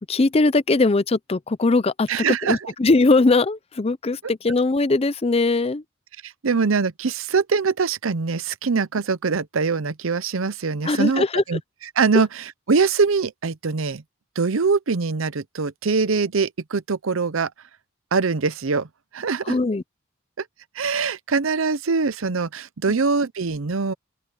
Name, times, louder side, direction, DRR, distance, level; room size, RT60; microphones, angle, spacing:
voice 1, 0.1-2.1 2.4-5.8 10.8-11.4 19.4-19.8 22.9-23.0, left 3 dB, 30° left, 0.5 m, -20 dB
voice 2, 2.1-2.7 6.2-11.6 12.0-14.0 14.4-17.5 18.1-18.9 19.1-19.6 20.4-20.5 20.8-23.9, right 4 dB, 75° right, 0.7 m, -23 dB
open air
head